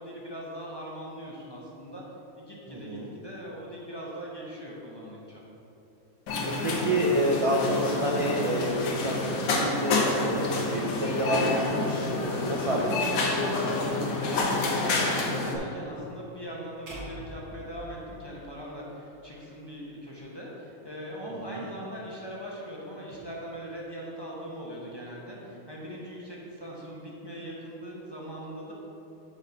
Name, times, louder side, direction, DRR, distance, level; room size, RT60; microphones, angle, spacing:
voice 1, 0.0-2.0 2.4-5.4 10.3-10.8 13.4-28.7, equal, 20° left, -5 dB, 0.8 m, -40 dB
voice 2, 2.7-3.1 6.6-13.1 21.3-21.6, right 1 dB, 50° right, -3 dB, 0.4 m, -29 dB
sound 1, 6.3-15.6, left 3 dB, 80° left, 1.2 m, -28 dB
sound 2, 16.9-19.1, right 1 dB, 85° right, 1.7 m, -44 dB
6.3 x 4.1 x 5.2 m, 2.9 s
omnidirectional pair, 1.5 m